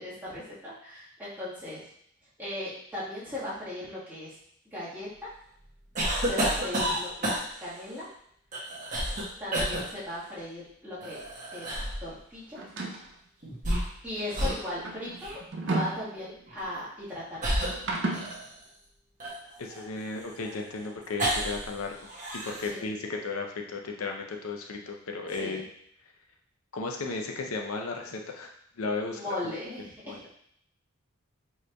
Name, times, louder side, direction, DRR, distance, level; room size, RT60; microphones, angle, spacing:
voice 1, 0.0-1.8 2.4-4.3 4.7-5.3 6.2-8.1 9.4-11.2 11.5-12.6 14.0-17.6 22.6-22.9 25.3-25.6 29.1-30.3, left 1 dB, 10° right, -11 dB, 1.4 m, -38 dB
sound 1, 6.0-7.7 8.5-9.2 9.5-9.8 11.0-12.0 13.4-14.1 14.3-14.6 15.2-15.4 16.5-16.7 17.4-18.6 19.2-21.7 22.0-22.7, right 1 dB, 35° right, 1.0 m, -30 dB
sound 2, 12.6-13.1 14.2-16.6 17.7-18.4, right 2 dB, 55° right, 0.5 m, -33 dB
voice 2, 19.6-21.9 22.4-25.6 26.7-28.5 28.8-29.4 30.1-30.2, left 3 dB, 90° left, 2 dB, 0.6 m, -34 dB
4.5 x 3.1 x 2.3 m, 0.68 s
head